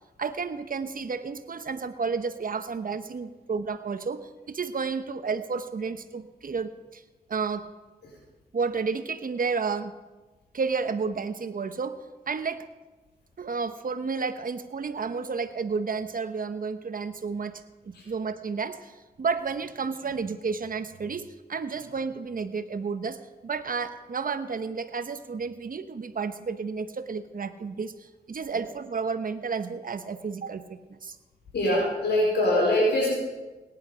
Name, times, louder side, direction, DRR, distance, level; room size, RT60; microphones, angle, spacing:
voice 1, 0.2-7.0 7.3-7.6 8.5-9.9 10.5-12.0 12.3-12.6 13.4-31.2, right 5 dB, 55° right, 10 dB, 1.0 m, -31 dB
voice 2, 31.5-33.1, left 1 dB, 85° left, -5 dB, 4.7 m, -23 dB
17.5 x 10.5 x 4.9 m, 1.2 s
cardioid pair, 50°, 17 cm